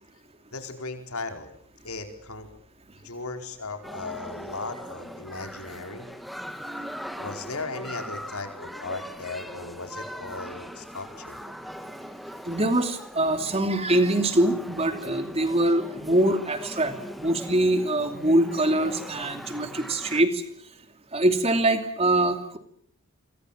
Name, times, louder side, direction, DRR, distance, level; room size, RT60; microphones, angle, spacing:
voice 1, 0.5-1.5 1.8-2.5 3.0-6.1 7.1-11.4, left 3 dB, 75° left, 6 dB, 4.7 m, -37 dB
sound 1, 3.8-20.2, equal, ahead, 1.7 m, -40 dB
voice 2, 6.7-7.0 12.4-20.4 21.1-22.6, right 1 dB, 25° right, 8 dB, 2.9 m, -24 dB
28.0 x 26.0 x 7.5 m, 0.66 s
head